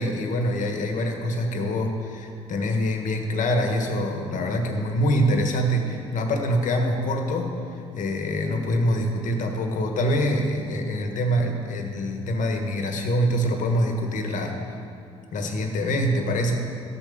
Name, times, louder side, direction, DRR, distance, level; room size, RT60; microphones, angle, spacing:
voice 1, 0.0-14.6 15.3-16.5, equal, 60° left, 4 dB, 1.5 m, -25 dB
13.0 x 7.0 x 5.2 m, 2.5 s
hypercardioid pair, 60°, 15 cm